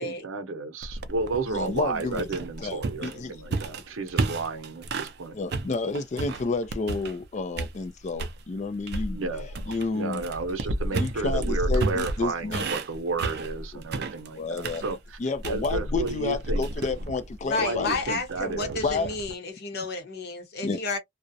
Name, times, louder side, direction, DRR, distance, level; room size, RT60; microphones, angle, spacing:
voice 1, 0.0-5.3 9.1-15.2 15.4-16.7 17.6-18.9, right 3 dB, 90° right, 0.7 m, -32 dB
sound 1, 0.8-5.2 5.5-7.3 7.6-8.4 8.9-19.3, right 2 dB, 55° right, 0.5 m, -32 dB
voice 2, 1.5-2.3 2.6-3.4 5.3-9.2 9.7-10.2 10.9-12.7 14.4-14.8 15.2-17.9 18.8-19.1 20.6-20.8, left 3 dB, 35° left, 0.4 m, -30 dB
voice 3, 17.4-21.0, left 3 dB, 55° left, 0.8 m, -31 dB
2.3 x 2.0 x 2.6 m
head